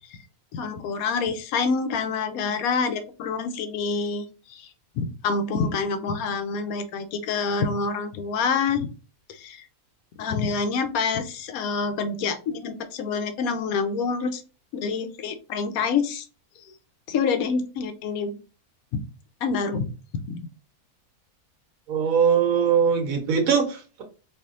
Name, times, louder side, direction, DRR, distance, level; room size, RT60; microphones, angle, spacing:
voice 1, 0.5-4.2 4.5-4.7 5.0-8.9 9.3-9.7 10.2-14.4 14.7-16.3 17.1-18.3 19.4-19.9 20.3-20.5, left 5 dB, 75° left, 9 dB, 1.0 m, -27 dB
voice 2, 21.9-24.0, right 7 dB, 70° right, 4 dB, 1.2 m, -21 dB
4.3 x 2.7 x 2.5 m, 0.34 s
omnidirectional pair, 1.6 m